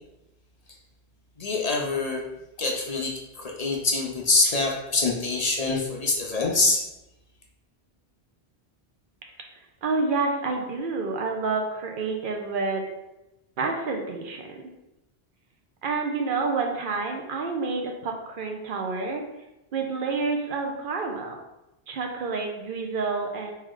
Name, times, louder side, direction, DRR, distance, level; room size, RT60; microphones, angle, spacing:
voice 1, 1.4-2.3 2.6-6.8, left 3 dB, 45° left, -1 dB, 0.5 m, -25 dB
voice 2, 9.8-12.8 13.6-14.6 15.8-19.2 19.7-21.4 21.9-23.5, right 4 dB, 60° right, 2 dB, 0.8 m, -28 dB
3.2 x 3.0 x 3.7 m, 0.94 s
omnidirectional pair, 1.1 m